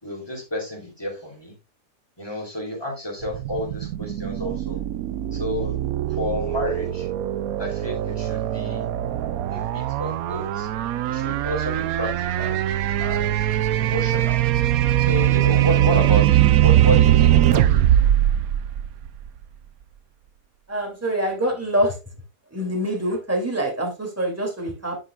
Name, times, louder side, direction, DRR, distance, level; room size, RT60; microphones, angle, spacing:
voice 1, 0.0-1.5 2.2-4.8 5.3-5.7 6.1-7.1 7.6-8.9 9.5-10.7 11.0-12.6 13.0-13.5 13.7-14.4 15.0-17.8, equal, 15° left, 0 dB, 3.4 m, -30 dB
sound 1, 3.2-19.4, right 12 dB, 80° right, 1.1 m, -21 dB
voice 2, 20.7-22.0 22.5-25.0, right 1 dB, 10° right, 0 dB, 2.7 m, -25 dB
9.9 x 7.8 x 2.4 m, 0.27 s
omnidirectional pair, 1.5 m